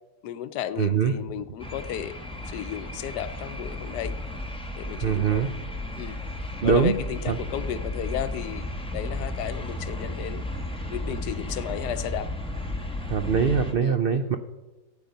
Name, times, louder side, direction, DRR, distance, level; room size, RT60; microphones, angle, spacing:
voice 1, 0.2-2.1 2.5-4.2 4.8-5.4 6.0-6.2 6.6-8.7 8.9-10.4 10.9-12.3 13.8-14.0, left 10 dB, 80° left, 13 dB, 1.2 m, -33 dB
voice 2, 0.8-1.1 5.0-5.5 6.6-6.9 7.3-7.4 13.1-14.4, right 6 dB, 80° right, 8 dB, 0.5 m, -22 dB
sound 1, 1.6-13.7, left 1 dB, 5° left, 1.1 m, -34 dB
14.5 x 9.1 x 5.3 m, 1.1 s
omnidirectional pair, 1.8 m